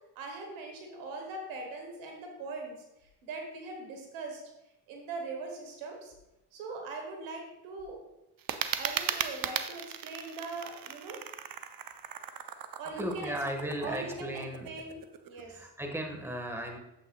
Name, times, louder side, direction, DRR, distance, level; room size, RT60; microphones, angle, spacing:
voice 1, 0.1-2.7 3.2-4.4 4.9-6.1 6.5-8.0 8.6-11.2 12.8-13.3 13.8-15.0 15.3-15.6, right 3 dB, 90° right, 2 dB, 1.4 m, -41 dB
sound 1, 8.4-15.4, right 8 dB, 50° right, 0.7 m, -38 dB
voice 2, 12.8-14.8 15.4-16.8, right 1 dB, 5° right, 3 dB, 1.6 m, -36 dB
9.1 x 7.5 x 2.4 m, 0.90 s
supercardioid pair, 50°, 46 cm